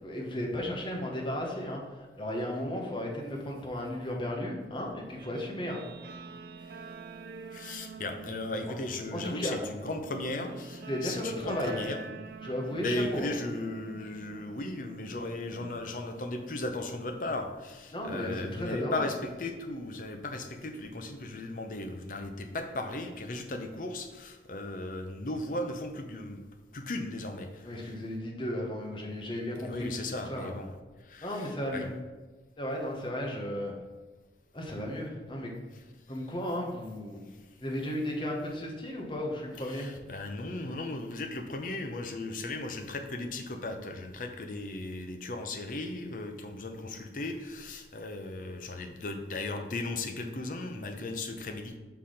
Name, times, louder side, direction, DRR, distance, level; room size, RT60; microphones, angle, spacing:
voice 1, 0.0-5.8 9.1-9.6 10.9-11.8 12.4-13.3 17.9-19.0 27.6-30.5 31.2-31.9 32.6-33.7 34.5-35.5 36.1-37.2 37.6-39.9, left 1 dB, 30° left, -1 dB, 1.2 m, -34 dB
Guitar, 5.2-15.8, right 4 dB, 60° right, 0.3 m, -46 dB
voice 2, 7.5-12.0 12.8-26.4 26.7-27.9 29.6-30.7 31.1-31.9 39.6-51.8, left 2 dB, 50° left, 5 dB, 0.7 m, -36 dB
5.6 x 4.3 x 5.0 m, 1.3 s
head